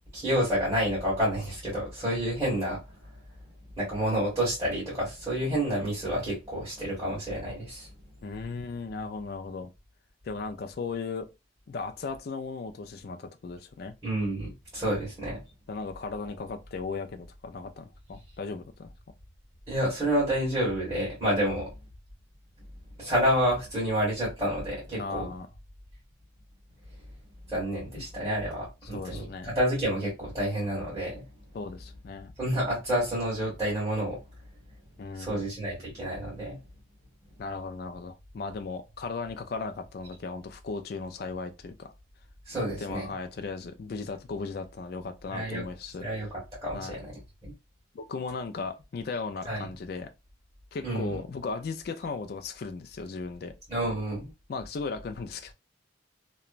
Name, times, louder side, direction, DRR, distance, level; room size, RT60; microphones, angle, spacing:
voice 1, 0.1-3.1 3.8-7.9 14.0-15.4 19.7-21.7 23.0-25.3 27.5-31.2 32.4-34.2 35.1-36.6 42.5-43.1 45.3-45.6 46.0-47.1 47.4-47.5 49.5-49.6 50.8-51.2 53.7-54.3, equal, 20° right, 1.5 m, -29 dB
voice 2, 8.2-9.7 10.2-11.3 11.7-13.9 15.7-18.9 21.4-21.6 25.0-25.5 28.0-28.1 28.9-29.5 31.5-32.3 35.0-35.4 37.4-41.9 42.8-46.1 46.7-47.0 47.9-50.1 50.7-53.5 54.5-55.5, left 4 dB, 50° left, 0.3 m, -36 dB
2.9 x 2.2 x 2.4 m
head